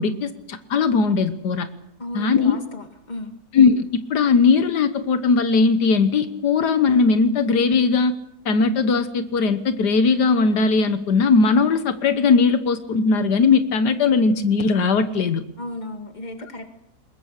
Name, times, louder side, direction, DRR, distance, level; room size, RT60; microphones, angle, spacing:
voice 1, 0.0-1.7 2.1-2.6 3.5-8.1 8.5-15.4, left 4 dB, 80° left, 10 dB, 1.8 m, -19 dB
voice 2, 2.0-3.3 15.6-16.6, left 1 dB, 25° left, 5 dB, 2.3 m, -34 dB
21.5 x 21.0 x 6.6 m, 0.78 s
omnidirectional pair, 1.7 m